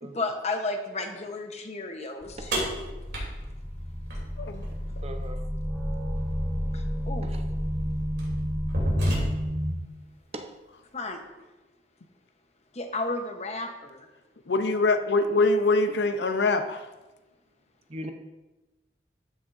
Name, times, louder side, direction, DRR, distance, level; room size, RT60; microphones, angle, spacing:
voice 1, 0.0-2.8 6.7-7.3 9.1-9.2 10.9-11.2 12.7-13.7, left 2 dB, 40° left, 4 dB, 0.9 m, -33 dB
sound 1, 2.2-9.7, equal, 5° right, 1.1 m, -31 dB
sound 2, 2.5-4.7 6.6-6.7 7.5-7.7 8.2-9.7, equal, 75° right, 3.0 m, -29 dB
voice 2, 5.0-5.5 7.2-7.4 10.3-10.5 17.9-18.1, right 1 dB, 35° right, 5 dB, 0.6 m, -39 dB
voice 3, 14.5-16.8, left 3 dB, 75° left, 7 dB, 0.7 m, -23 dB
13.0 x 6.2 x 2.6 m, 1.1 s
head